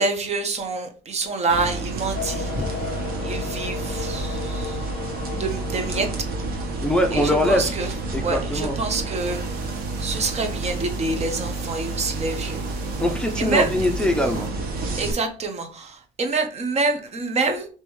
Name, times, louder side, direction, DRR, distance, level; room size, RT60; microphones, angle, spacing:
voice 1, 0.0-2.5 3.2-4.9 5.3-6.3 6.6-6.7 7.1-9.7 10.0-12.6 13.4-13.7 15.0-17.7, right 3 dB, 40° right, 5 dB, 0.9 m, -27 dB
sound 1, 1.5-15.1, right 3 dB, 60° right, 1.2 m, -30 dB
sound 2, 2.1-8.9, left 9 dB, 75° left, 0.5 m, -36 dB
voice 2, 6.8-7.7 8.1-8.8 13.0-14.5, left 1 dB, 5° left, 3 dB, 0.6 m, -22 dB
sound 3, 9.1-14.5, right 5 dB, 80° right, 1.0 m, -45 dB
5.2 x 3.0 x 3.1 m, 0.39 s
cardioid pair, 110°, 17 cm